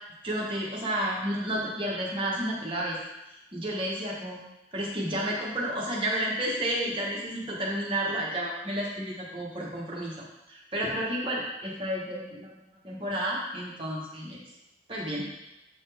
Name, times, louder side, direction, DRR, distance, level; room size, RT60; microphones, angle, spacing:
voice 1, 0.2-3.0 3.5-4.4 4.7-10.1 10.5-12.6 12.8-14.4 14.9-15.3, right 1 dB, 30° right, -4 dB, 1.1 m, -31 dB
7.7 x 4.1 x 3.3 m, 0.93 s
head